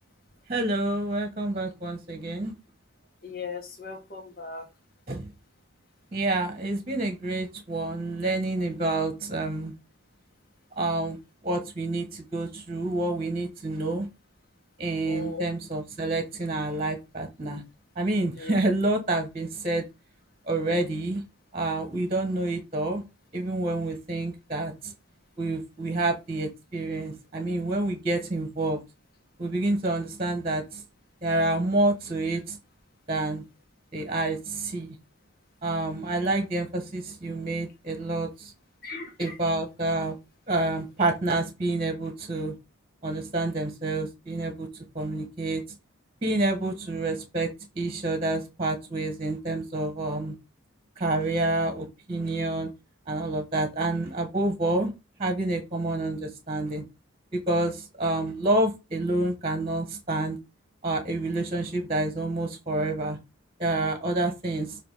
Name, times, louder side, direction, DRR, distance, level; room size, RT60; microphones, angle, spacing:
voice 1, 0.5-2.5 5.1-5.3 6.1-9.7 10.8-11.2 11.4-14.1 14.8-17.6 17.9-19.8 20.5-21.2 21.5-23.0 23.3-24.9 25.4-28.8 29.4-30.8 31.2-32.6 33.1-33.4 33.9-35.0 35.6-38.5 39.2-40.1 40.5-42.6 43.0-44.7 44.9-45.6 46.2-47.5 47.7-50.4 51.0-52.7 53.1-54.9 55.2-56.8 57.3-60.4 60.8-63.2 63.6-64.8, right 2 dB, 30° right, 1.3 m, -28 dB
voice 2, 3.2-4.7 15.0-15.4 18.4-18.5 38.8-39.3, left 4 dB, 45° left, 1.7 m, -37 dB
7.0 x 3.0 x 5.5 m
head